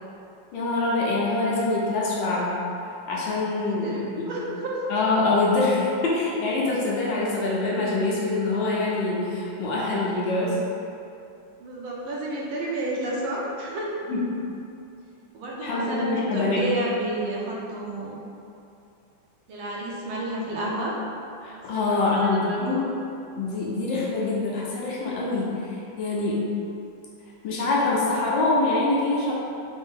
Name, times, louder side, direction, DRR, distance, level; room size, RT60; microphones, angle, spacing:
voice 1, 0.5-2.6 3.1-4.3 4.9-10.6 14.1-14.2 15.6-16.7 21.4-22.8 23.4-26.5 27.4-29.3, left 2 dB, 70° left, -5 dB, 1.4 m, -25 dB
voice 2, 3.6-4.8 11.6-13.9 15.3-18.2 19.5-20.9 21.7-22.8, right 1 dB, 85° right, -4 dB, 1.5 m, -31 dB
4.0 x 2.7 x 3.6 m, 2.7 s
omnidirectional pair, 2.2 m